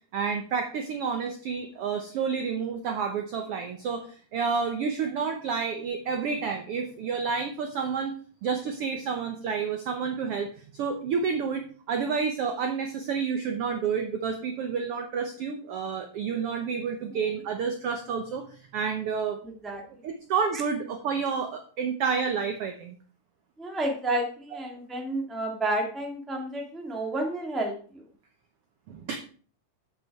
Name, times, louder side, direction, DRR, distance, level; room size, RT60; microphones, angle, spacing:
voice 1, 0.1-8.1 8.4-19.4 20.0-22.9 24.5-24.6 28.9-29.2, right 6 dB, 80° right, 6 dB, 1.3 m, -30 dB
voice 2, 19.4-19.8 20.5-20.6 23.6-28.0, right 1 dB, ahead, 1 dB, 1.0 m, -31 dB
8.1 x 7.8 x 4.8 m, 0.43 s
omnidirectional pair, 3.9 m